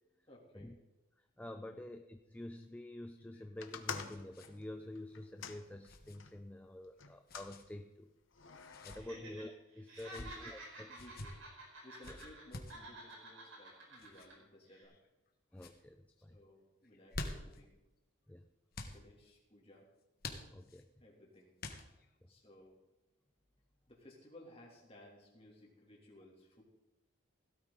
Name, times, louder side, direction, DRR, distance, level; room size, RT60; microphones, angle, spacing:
voice 1, 0.3-0.7 1.7-1.8 9.1-9.2 10.2-10.4 10.9-11.4 11.8-15.0 16.2-17.7 18.8-19.9 21.0-21.5 22.3-22.8 23.9-26.6, left 1 dB, 30° left, -2 dB, 2.9 m, -59 dB
voice 2, 1.2-8.1 8.8-11.2 12.1-12.2 15.5-16.4 18.3-18.5 20.5-20.9 22.2-22.3, left 1 dB, 5° left, 6 dB, 0.4 m, -49 dB
sound 1, 3.2-4.5 4.8-4.9 5.8-6.2 7.3-7.6 8.6-9.0 9.9-10.3 10.9-11.3 12.0-12.8 14.0-14.3 14.9-15.3 15.5-15.8 16.8-17.6 18.7-19.0 20.2-20.8 21.6-22.1, left 2 dB, 45° left, 1.3 m, -47 dB
sound 2, 3.6-6.4 7.0-7.6 8.3-9.0, left 6 dB, 65° left, 1.0 m, -47 dB
Laughter, 8.9-9.5 9.8-12.4 12.7-14.3 14.7-14.8, right 2 dB, 75° right, 5.1 m, -51 dB
17.0 x 12.5 x 4.0 m, 0.99 s
head